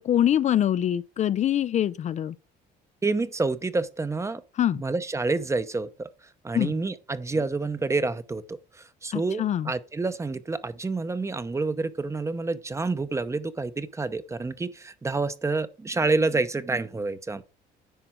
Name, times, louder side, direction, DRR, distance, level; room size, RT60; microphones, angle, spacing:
voice 1, 0.0-2.3 4.6-4.8 6.5-6.7 9.1-9.7, left 11 dB, 45° left, 0.4 m, -24 dB
voice 2, 3.0-4.4 4.7-6.1 6.4-8.6 9.0-17.4, right 3 dB, 15° right, 0.8 m, -28 dB
10.0 x 4.5 x 6.1 m
cardioid pair, 110°, 17 cm